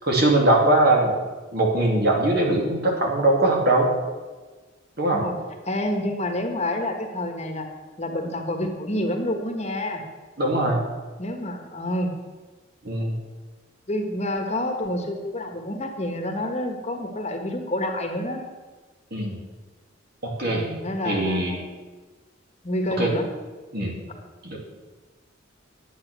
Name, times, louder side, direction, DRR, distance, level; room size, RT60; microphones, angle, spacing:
voice 1, 0.0-1.1 1.5-3.9 5.0-5.2 10.4-10.8 12.8-13.1 19.1-19.4 20.2-20.7 21.0-21.6 23.0-23.1 23.7-23.9 24.4-24.6, right 1 dB, 55° right, -1 dB, 2.7 m, -21 dB
voice 2, 5.7-7.7 8.0-10.0 11.2-12.1 13.9-18.4 20.4-21.6 22.6-23.3, left 1 dB, 35° left, 4 dB, 1.4 m, -28 dB
10.0 x 8.8 x 6.2 m, 1.3 s
head